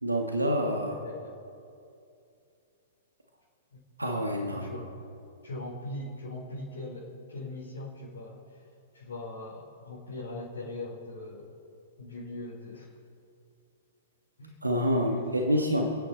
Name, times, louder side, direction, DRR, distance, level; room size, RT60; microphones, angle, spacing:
voice 1, 0.0-1.0 4.0-4.8 14.6-15.9, equal, 90° right, 3 dB, 1.7 m, -27 dB
voice 2, 0.8-1.3 3.7-3.8 4.5-4.9 5.4-8.6 8.9-11.5 12.0-12.9 14.4-14.6 14.9-15.7, left 2 dB, 65° left, -6 dB, 3.9 m, -40 dB
29.0 x 9.9 x 4.1 m, 2.5 s
figure-of-eight pair, 110°, 0 cm